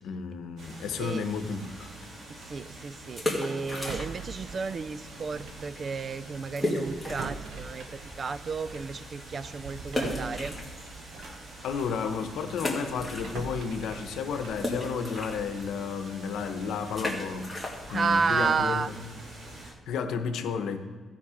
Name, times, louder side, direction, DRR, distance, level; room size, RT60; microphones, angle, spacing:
voice 1, 0.0-1.9 11.6-17.5 17.9-18.9 19.9-20.9, left 6 dB, 85° left, 7 dB, 0.9 m, -32 dB
sound 1, 0.6-19.7, right 1 dB, 65° right, 2.2 m, -46 dB
voice 2, 2.3-10.5 17.9-18.9, right 5 dB, 35° right, 15 dB, 0.3 m, -32 dB
sound 2, 3.1-4.4 4.7-4.8 5.4-5.5 5.7-5.8 6.6-7.5 8.0-8.1 9.9-11.2 11.7-11.8 12.5-13.7 14.0-19.5, left 1 dB, ahead, 2.0 m, -35 dB
sound 3, 3.7-5.7 6.0-6.2 6.8-12.0 12.5-15.5, right 4 dB, 80° right, 1.2 m, -43 dB
15.0 x 5.4 x 5.0 m, 1.5 s
cardioid pair, 140°, 0 cm